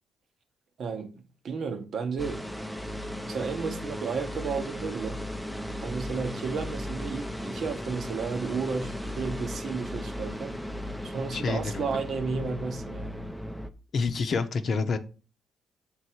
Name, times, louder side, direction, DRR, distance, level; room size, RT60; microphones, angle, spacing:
voice 1, 0.8-1.1 1.4-2.4 3.2-5.2 5.8-10.6 11.0-13.2, right 5 dB, 60° right, 1.0 m, -33 dB
sound 1, 2.2-13.7, equal, ahead, 0.6 m, -36 dB
voice 2, 11.3-12.0 13.9-15.0, left 4 dB, 50° left, 0.7 m, -28 dB
7.0 x 3.7 x 4.5 m
cardioid pair, 90°, 0 cm